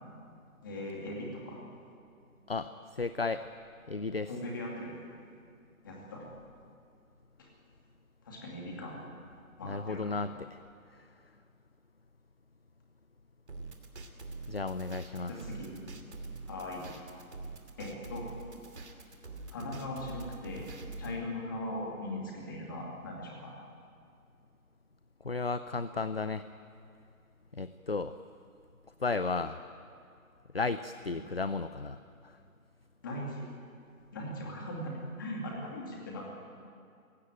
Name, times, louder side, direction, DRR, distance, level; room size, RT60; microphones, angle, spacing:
voice 1, 0.6-1.6 4.3-4.9 5.8-6.2 7.4-7.5 8.2-9.0 9.6-10.2 15.3-15.8 16.5-16.9 17.8-18.3 19.5-20.7 21.0-23.5 31.1-31.2 33.0-33.5 34.1-36.3, left 1 dB, 15° left, -2 dB, 2.5 m, -39 dB
voice 2, 2.5-3.5 3.9-4.3 9.6-10.6 14.5-15.3 25.2-26.5 27.5-28.1 29.0-29.6 30.5-32.0 32.2-32.4, left 4 dB, 45° left, 12 dB, 0.6 m, -34 dB
sound 1, 13.5-21.2, right 3 dB, 50° right, 2.8 m, -44 dB
27.0 x 17.0 x 9.3 m, 2.3 s
hypercardioid pair, 175°, 43 cm